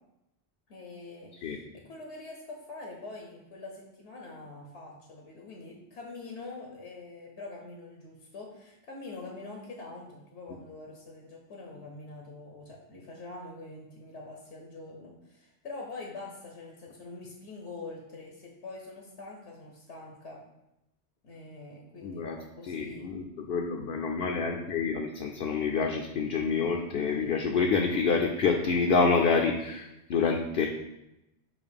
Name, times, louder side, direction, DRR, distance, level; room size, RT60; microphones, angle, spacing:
voice 1, 0.7-20.4 21.2-23.1, left 3 dB, 80° left, 0 dB, 1.2 m, -44 dB
voice 2, 22.0-22.4 22.6-30.7, left 5 dB, 65° left, 2 dB, 0.8 m, -27 dB
7.3 x 2.5 x 5.2 m, 0.88 s
omnidirectional pair, 1.1 m